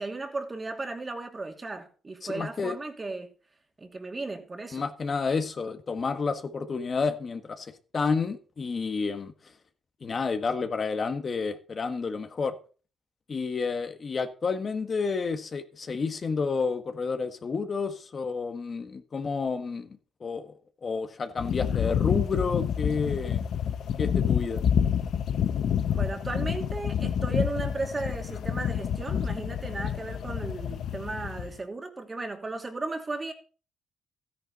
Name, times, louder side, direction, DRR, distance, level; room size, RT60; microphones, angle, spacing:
voice 1, 0.0-3.3 3.8-4.9 25.9-33.3, right 3 dB, 25° right, 2.7 m, -35 dB
voice 2, 2.2-2.8 4.7-9.3 10.0-12.5 13.3-20.5 20.8-23.4 24.0-24.6, left 4 dB, 40° left, 1.6 m, -30 dB
sound 1, 21.4-31.6, left 8 dB, 65° left, 1.0 m, -28 dB
13.5 x 10.0 x 4.2 m
cardioid pair, 90°, 0 cm